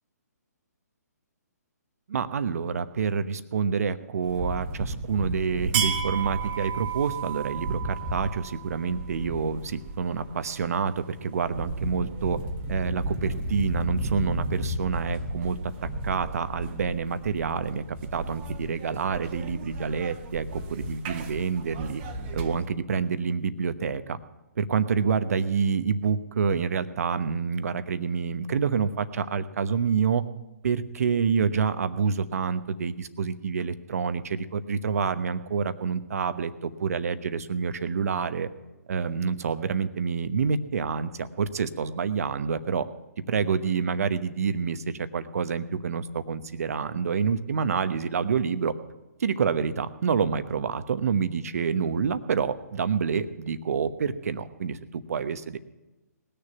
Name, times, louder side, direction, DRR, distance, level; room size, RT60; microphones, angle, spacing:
voice 1, 2.1-12.4 12.7-17.8 18.1-22.0 22.3-24.2 24.6-30.2 30.6-38.5 38.9-42.9 43.3-48.7 49.2-55.6, right 6 dB, 60° right, 12 dB, 1.0 m, -27 dB
sound 1, 4.2-22.7, right 3 dB, 35° right, 1.4 m, -33 dB
19.5 x 6.8 x 9.2 m, 1.1 s
figure-of-eight pair, 135°, 9 cm